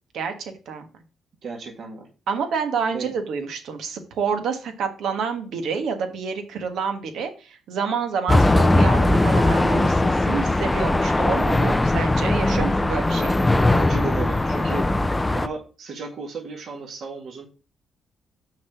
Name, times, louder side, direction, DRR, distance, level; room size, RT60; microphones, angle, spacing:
voice 1, 0.1-0.8 2.3-13.3, right 6 dB, 75° right, 6 dB, 1.4 m, -28 dB
voice 2, 1.4-2.1 2.9-3.1 13.7-14.8 15.2-17.5, right 4 dB, 60° right, 1 dB, 2.1 m, -34 dB
sound 1, 8.3-15.5, left 2 dB, 15° left, 0.4 m, -19 dB
6.1 x 4.2 x 6.0 m, 0.34 s
cardioid pair, 90°, 0 cm